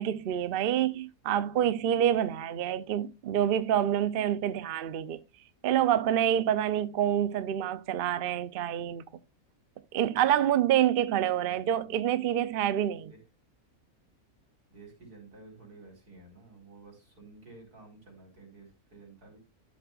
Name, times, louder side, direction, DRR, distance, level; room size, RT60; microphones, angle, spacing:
voice 1, 0.0-5.2 5.6-9.0 9.9-13.1, right 10 dB, 60° right, 0.5 m, -27 dB
voice 2, 11.4-11.9 13.1-13.2 14.7-19.4, right 3 dB, 80° right, 4.8 m, -52 dB
13.0 x 7.2 x 2.4 m
omnidirectional pair, 1.6 m